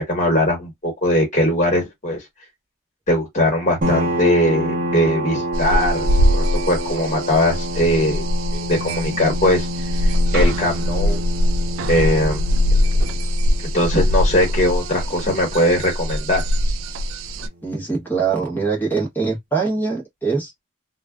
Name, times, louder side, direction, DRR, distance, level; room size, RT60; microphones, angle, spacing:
voice 1, 0.0-2.2 3.1-8.2 8.7-9.7 10.0-11.2 11.9-12.4 13.6-16.4, left 1 dB, 35° left, 1.3 m, -20 dB
sound 1, 3.8-17.1, equal, 40° right, 0.7 m, -28 dB
sound 2, 5.5-17.5, equal, 75° right, 0.3 m, -22 dB
voice 2, 17.6-20.6, right 4 dB, 10° left, 0.9 m, -23 dB
2.4 x 2.2 x 2.3 m
head